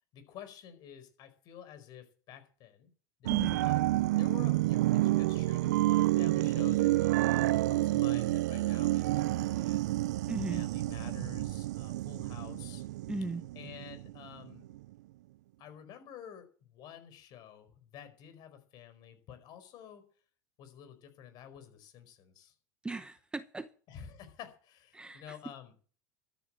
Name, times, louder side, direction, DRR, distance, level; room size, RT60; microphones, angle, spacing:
voice 1, 0.1-2.9 3.2-3.8 4.1-9.9 10.5-12.8 13.5-14.7 15.6-20.0 20.6-22.5 23.9-25.7, left 9 dB, 50° left, 4.9 m, -50 dB
sound 1, 3.2-14.3 14.7-14.8, right 17 dB, 75° right, 0.5 m, -29 dB
voice 2, 3.3-3.6 10.3-10.6 13.1-13.5 22.8-23.7 24.9-25.4, right 3 dB, 10° right, 0.9 m, -37 dB
13.5 x 9.2 x 6.5 m
hypercardioid pair, 110°, 9 cm